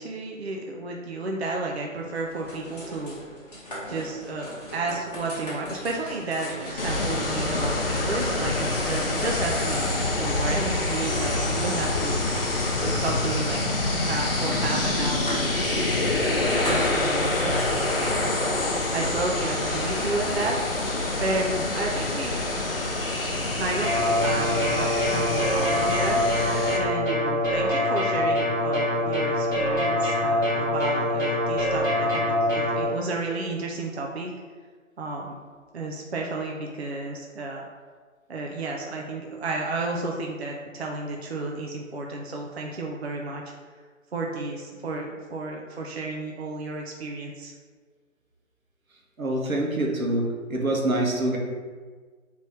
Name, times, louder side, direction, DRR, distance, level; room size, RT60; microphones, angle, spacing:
voice 1, 0.0-3.2 3.9-12.4 12.8-15.5 16.6-20.6 21.2-22.4 23.5-26.2 26.7-34.3 35.0-35.3 35.7-37.7 38.3-43.4 44.1-47.5, right 2 dB, 55° right, 0 dB, 0.4 m, -32 dB
sound 1, 2.1-18.6, equal, 30° left, 1.0 m, -41 dB
sound 2, 6.8-26.8, left 2 dB, 45° left, 0.5 m, -26 dB
sound 3, 23.8-32.8, left 1 dB, ahead, 1.0 m, -24 dB
voice 2, 49.2-50.2 50.5-51.4, right 1 dB, 85° right, -1 dB, 1.0 m, -25 dB
3.5 x 3.0 x 3.2 m, 1.5 s
figure-of-eight pair, 150°, 40 cm